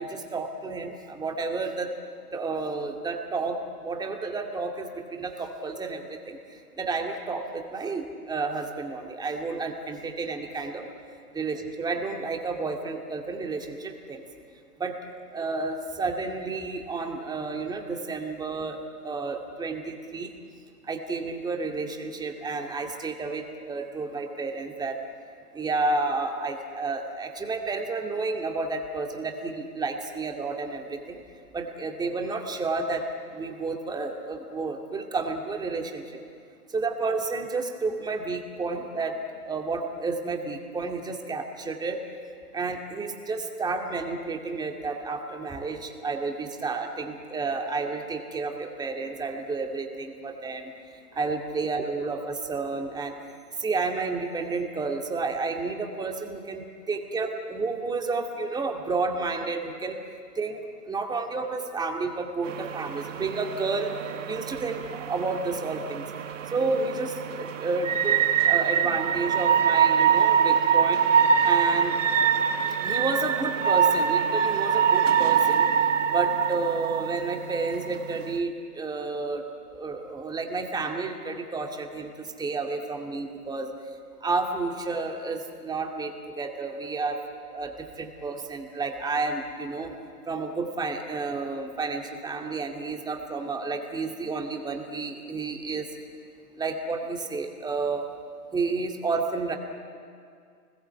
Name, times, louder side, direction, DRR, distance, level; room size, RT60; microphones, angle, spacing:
voice 1, 0.0-1.9 2.3-10.9 11.3-14.2 14.8-15.0 15.3-18.8 19.0-20.4 20.8-25.0 25.5-31.2 31.5-33.0 33.3-36.2 36.7-42.0 42.5-53.2 53.6-60.0 60.4-63.9 64.3-66.0 66.5-68.2 68.5-72.0 72.8-75.7 76.1-79.4 79.7-83.7 84.2-87.2 87.5-89.9 90.3-95.9 96.6-98.1 98.5-99.6, right 3 dB, 10° right, 3 dB, 2.2 m, -31 dB
sound 1, 62.4-78.4, right 7 dB, 50° right, 1.3 m, -24 dB
28.5 x 20.5 x 8.4 m, 2.3 s
figure-of-eight pair, 120°, 48 cm